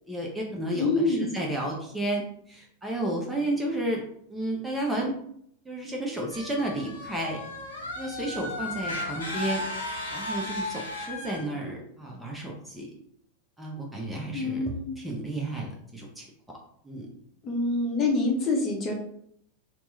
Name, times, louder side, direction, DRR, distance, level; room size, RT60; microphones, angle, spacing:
voice 1, 0.1-4.0 4.3-5.1 5.7-7.4 8.0-9.6 10.1-12.9 13.6-16.2 16.8-17.1, right 1 dB, 5° right, -2 dB, 0.6 m, -32 dB
voice 2, 0.7-1.3 14.3-15.0 17.4-18.9, left 2 dB, 25° left, 0 dB, 0.7 m, -26 dB
sound 1, 6.3-11.4, left 2 dB, 70° left, 0.7 m, -35 dB
2.9 x 2.1 x 3.3 m, 0.69 s
figure-of-eight pair, 90°, 0 cm